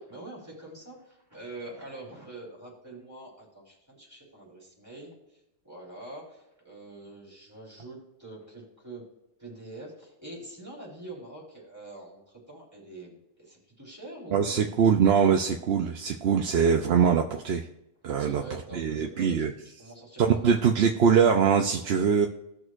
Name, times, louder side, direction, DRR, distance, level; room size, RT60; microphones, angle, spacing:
voice 1, 0.0-9.0 9.4-14.9 18.2-19.5 19.8-20.6, right 2 dB, 15° right, -4 dB, 4.0 m, -45 dB
voice 2, 14.3-17.7 18.0-18.4 18.7-19.5 20.4-22.3, right 7 dB, 70° right, 3 dB, 0.9 m, -23 dB
18.0 x 6.3 x 2.5 m, 0.86 s
omnidirectional pair, 1.1 m